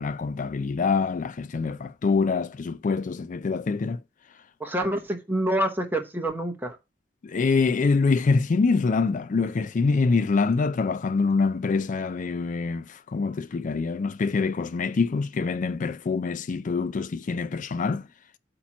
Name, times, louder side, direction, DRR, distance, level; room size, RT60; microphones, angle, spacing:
voice 1, 0.0-4.0 7.2-18.1, left 4 dB, 45° left, 0.4 m, -25 dB
voice 2, 4.6-6.8, right 1 dB, 10° right, 0.8 m, -27 dB
8.5 x 3.0 x 5.9 m
head